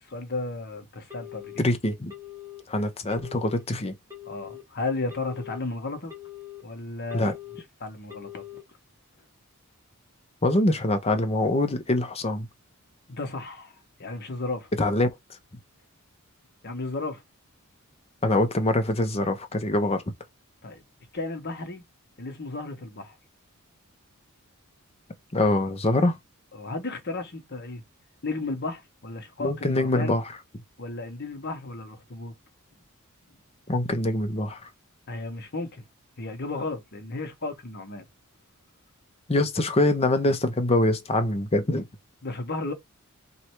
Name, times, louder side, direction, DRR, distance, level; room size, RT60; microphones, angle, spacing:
voice 1, 0.1-1.6 4.2-6.1 6.6-7.3 7.8-8.4 13.1-13.7 14.0-14.7 16.6-17.2 20.6-20.8 21.1-21.8 22.2-23.1 26.5-27.8 28.2-30.1 30.8-32.3 35.1-35.8 36.2-38.0 42.2-42.7, left 3 dB, 50° left, 1.0 m, -34 dB
Telephone, 1.1-1.6 2.1-2.6 3.1-3.6 4.1-4.6 5.1-5.6 6.1-6.6 7.1-7.6 8.1-8.6, left 13 dB, 15° right, 1.2 m, -42 dB
voice 2, 1.6-2.1 2.7-3.9 7.1-7.3 10.4-12.5 14.8-15.1 18.2-20.0 25.3-26.2 29.4-30.2 33.7-34.7 39.3-41.9, left 1 dB, 30° left, 0.7 m, -24 dB
3.2 x 2.6 x 4.4 m
head